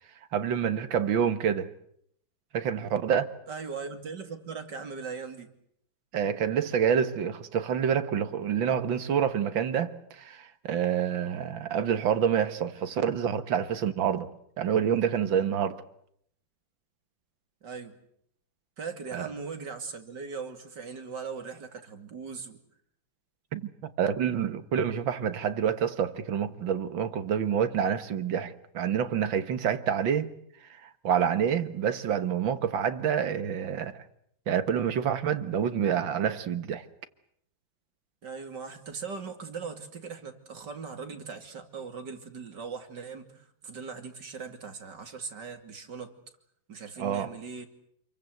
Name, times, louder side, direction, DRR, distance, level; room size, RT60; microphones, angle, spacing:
voice 1, 0.3-1.7 2.5-3.4 6.1-14.3 14.6-15.8 19.1-19.3 23.5-30.3 30.6-34.0 34.5-36.9 47.0-47.3, right 8 dB, 80° right, 2.2 m, -27 dB
voice 2, 3.5-5.5 17.6-18.0 18.8-22.6 38.2-46.1 46.7-47.7, right 5 dB, 60° right, 3.2 m, -39 dB
28.0 x 23.0 x 7.9 m
omnidirectional pair, 2.1 m